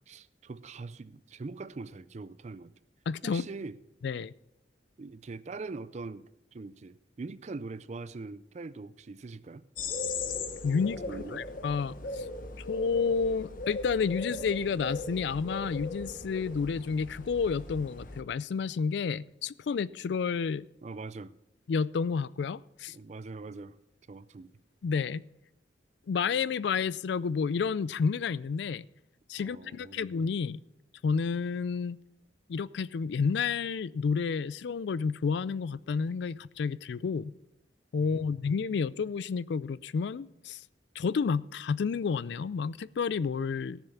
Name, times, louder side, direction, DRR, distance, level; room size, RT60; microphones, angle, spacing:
voice 1, 0.1-2.7 3.2-3.8 5.0-9.7 11.1-11.5 20.8-21.3 22.9-23.8 24.1-24.5 29.4-30.1 38.0-38.1, right 3 dB, 40° right, 0.4 m, -42 dB
voice 2, 3.1-3.4 4.0-4.3 10.6-11.0 11.3-12.3 12.6-20.6 21.7-22.9 24.8-25.2 26.1-28.9 29.3-30.6 31.0-32.0 32.5-37.3 37.9-40.6 41.0-43.8, left 5 dB, 65° left, 0.3 m, -30 dB
sound 1, 9.8-18.2, left 3 dB, 45° left, 1.0 m, -38 dB
14.5 x 7.1 x 5.7 m
head